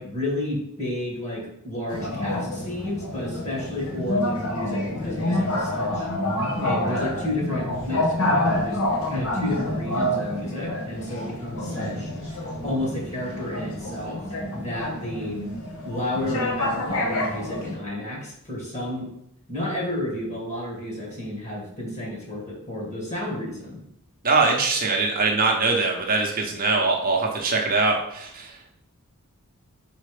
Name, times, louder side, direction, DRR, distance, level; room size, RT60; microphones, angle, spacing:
voice 1, 0.0-6.1 6.6-8.8 9.1-12.1 12.6-15.4 15.8-19.1 19.5-23.8, left 1 dB, 30° left, -3 dB, 2.2 m, -31 dB
sound 1, 1.9-17.8, left 1 dB, 65° left, 1.3 m, -28 dB
voice 2, 24.2-28.7, right 3 dB, 40° right, 0 dB, 0.9 m, -22 dB
4.4 x 4.3 x 5.0 m, 0.75 s
head